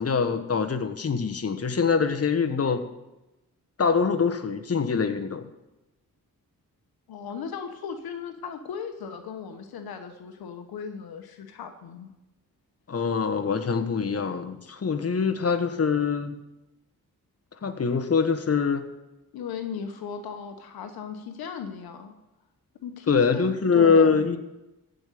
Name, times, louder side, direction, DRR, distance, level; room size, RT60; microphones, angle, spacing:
voice 1, 0.0-2.8 3.8-5.5 12.9-16.3 17.6-18.9 23.1-24.4, left 5 dB, 40° left, 8 dB, 1.3 m, -24 dB
voice 2, 7.1-12.1 14.1-14.3 19.3-22.1 22.8-24.2, left 6 dB, 90° left, 6 dB, 1.1 m, -37 dB
15.0 x 5.3 x 8.4 m, 0.99 s
cardioid pair, 55°, 36 cm